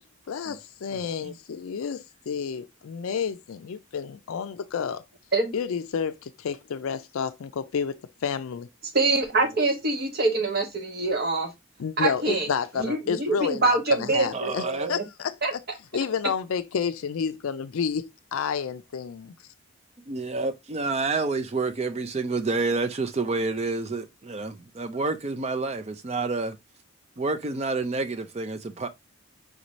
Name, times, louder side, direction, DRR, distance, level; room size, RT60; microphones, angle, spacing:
voice 1, 0.3-5.0 5.5-8.7 11.8-15.6 15.9-19.3, left 6 dB, 70° left, 0.4 m, -30 dB
voice 2, 0.9-1.3 14.3-14.9 20.1-26.6 27.2-28.9, right 3 dB, 30° right, 0.4 m, -29 dB
voice 3, 8.9-11.5 12.0-12.5 12.8-15.0 15.4-15.5, right 3 dB, 45° right, 1.0 m, -25 dB
5.0 x 2.7 x 3.0 m
head